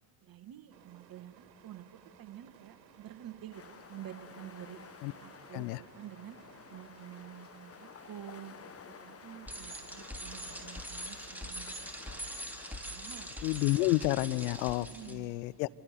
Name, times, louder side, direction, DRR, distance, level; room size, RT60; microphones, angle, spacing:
voice 1, 0.2-4.8 5.2-6.4 6.7-11.7 12.1-12.3 12.9-13.4 14.9-15.3, right 11 dB, 45° right, 11 dB, 1.6 m, -49 dB
sound 1, 0.7-14.7, right 9 dB, 80° right, 1.9 m, -60 dB
sound 2, 3.5-14.8, left 7 dB, 30° left, 1.2 m, -53 dB
Bicycle, 9.5-15.1, equal, 5° right, 2.9 m, -43 dB
voice 2, 13.4-15.7, left 19 dB, 70° left, 20 dB, 0.7 m, -30 dB
27.5 x 24.5 x 6.8 m, 2.6 s
hypercardioid pair, 75°, 50 cm